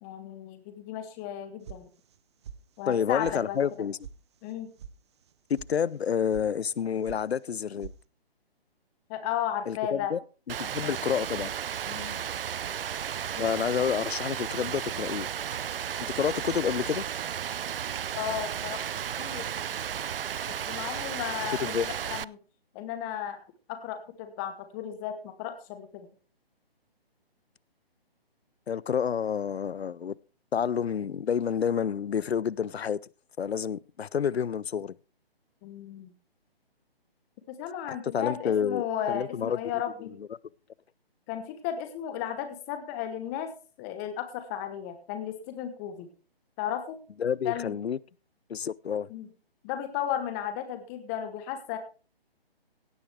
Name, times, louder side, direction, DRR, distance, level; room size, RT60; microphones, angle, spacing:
voice 1, 0.0-1.9 2.8-3.6 4.4-4.7 9.1-10.1 10.8-11.0 11.9-12.2 13.3-13.5 18.1-18.8 19.2-19.6 20.7-22.4 22.7-23.4 23.7-26.1 35.6-36.1 37.5-40.1 41.3-43.5 43.8-46.1 46.6-47.0 47.4-47.7 49.1-49.3 49.6-51.8, left 10 dB, 15° left, 1.0 m, -34 dB
sound 1, 1.7-2.2 2.4-3.0 3.2-3.4 3.7-4.2 4.4-4.9 5.2-5.7 6.0-6.5 6.7-7.2 7.5-8.0, right 8 dB, 25° right, 0.7 m, -44 dB
voice 2, 2.9-4.0 5.5-7.9 9.7-10.2 10.5-11.5 13.4-15.3 16.2-17.0 21.6-21.9 28.7-30.2 30.5-33.0 33.4-35.0 37.9-39.6 47.2-48.0 48.5-49.1, left 7 dB, 85° left, 0.6 m, -29 dB
Rain, 10.5-22.2, right 9 dB, 65° right, 0.5 m, -34 dB
16.5 x 9.6 x 3.4 m
figure-of-eight pair, 145°, 31 cm